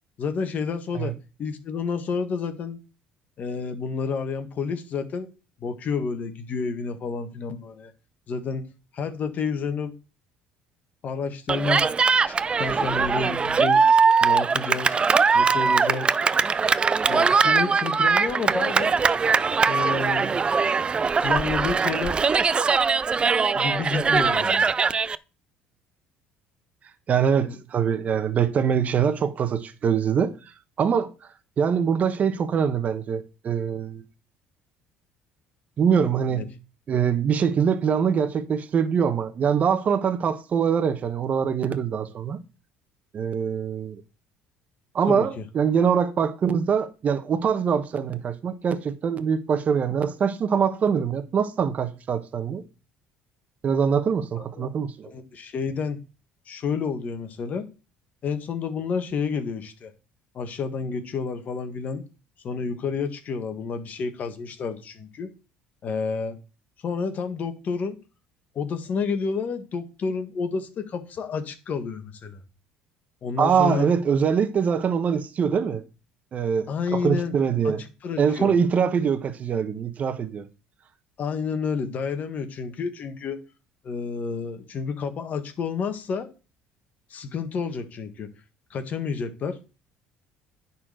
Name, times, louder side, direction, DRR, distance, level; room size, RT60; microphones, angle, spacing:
voice 1, 0.2-1.1 1.4-2.8 3.4-5.3 5.6-7.9 8.3-8.7 8.9-10.0 11.0-11.9 12.3-13.8 14.2-15.0 15.3-16.1 17.1-18.9 19.7-20.5 21.2-22.2 23.5-24.7 27.4-27.6 36.4-36.5 45.1-45.4 54.4-54.7 55.1-56.0 56.5-57.7 58.2-59.9 60.3-62.0 62.4-65.3 65.8-66.4 66.8-68.0 68.6-72.4 73.2-73.9 76.7-77.3 77.6-77.7 78.0-78.5 81.2-83.4 83.8-86.3 87.1-88.3 88.7-89.6, left 5 dB, 50° left, 1.7 m, -30 dB
Cheering, 11.5-25.1, right 5 dB, 30° right, 0.5 m, -21 dB
voice 2, 27.1-30.3 30.8-31.1 31.6-34.0 35.8-36.5 36.9-42.4 43.1-44.0 44.9-52.6 53.6-55.1 73.4-75.8 76.3-77.8 78.2-80.5, right 7 dB, 45° right, 1.3 m, -23 dB
10.0 x 4.4 x 6.6 m
supercardioid pair, 85°, 4 cm